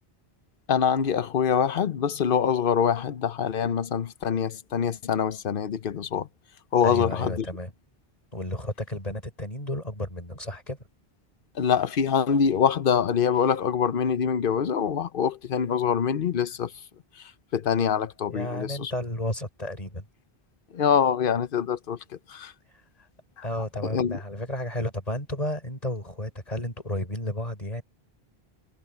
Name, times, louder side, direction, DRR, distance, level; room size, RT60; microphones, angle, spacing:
voice 1, 0.7-6.3 6.7-7.3 11.6-16.7 17.5-18.9 20.7-22.0 22.3-22.5 23.9-24.2, left 7 dB, 60° left, 1.0 m, -24 dB
voice 2, 6.8-7.7 8.3-10.8 18.3-20.1 23.0-23.1 23.4-27.8, left 1 dB, 35° left, 5.3 m, -32 dB
omnidirectional pair, 1.1 m